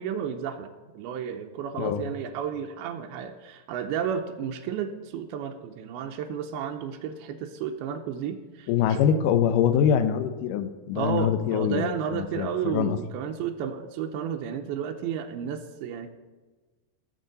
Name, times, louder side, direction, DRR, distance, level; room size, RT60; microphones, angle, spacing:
voice 1, 0.0-9.0 10.9-16.1, right 8 dB, 90° right, 4 dB, 2.6 m, -32 dB
voice 2, 8.7-13.0, left 8 dB, 80° left, 10 dB, 2.0 m, -24 dB
17.0 x 7.3 x 4.0 m, 1.3 s
omnidirectional pair, 4.4 m